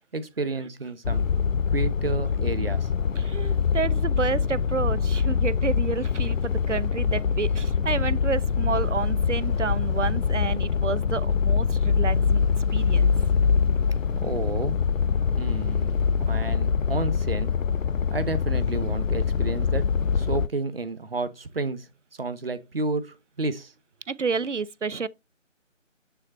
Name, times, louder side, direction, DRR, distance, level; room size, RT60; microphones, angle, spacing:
voice 1, 0.1-1.3 1.7-2.9 14.2-14.8 15.4-17.5 18.1-19.9 20.1-21.9 22.2-23.7, right 3 dB, 50° right, 1.0 m, -31 dB
sound 1, 1.0-20.5, left 6 dB, 85° left, 0.5 m, -24 dB
voice 2, 3.2-12.4 12.7-13.1 24.1-25.1, right 5 dB, 65° right, 0.6 m, -30 dB
9.5 x 3.4 x 4.2 m
figure-of-eight pair, 160°, 38 cm